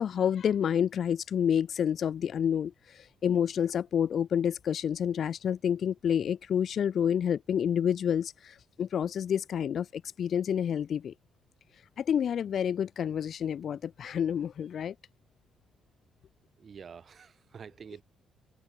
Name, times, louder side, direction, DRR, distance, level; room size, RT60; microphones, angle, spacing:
voice 1, 0.0-11.1 12.0-14.9, left 8 dB, 45° left, 0.4 m, -29 dB
voice 2, 16.6-18.0, right 6 dB, 35° right, 3.3 m, -47 dB
cardioid pair, 170°, 0 cm